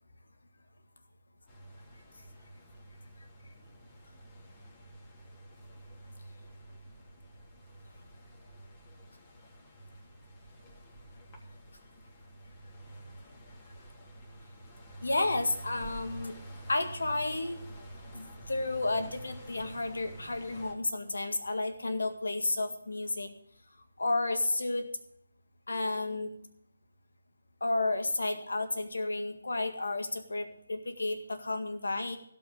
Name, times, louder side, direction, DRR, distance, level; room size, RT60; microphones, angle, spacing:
sound 1, 1.5-20.7, right 1 dB, 25° left, 3.2 m, -49 dB
voice 1, 15.0-16.4 16.7-17.6 18.1-23.3 24.0-24.9 25.7-26.3 27.6-32.2, left 2 dB, 75° left, 7 dB, 1.9 m, -32 dB
16.5 x 5.5 x 8.3 m, 0.71 s
figure-of-eight pair, 150°, 0 cm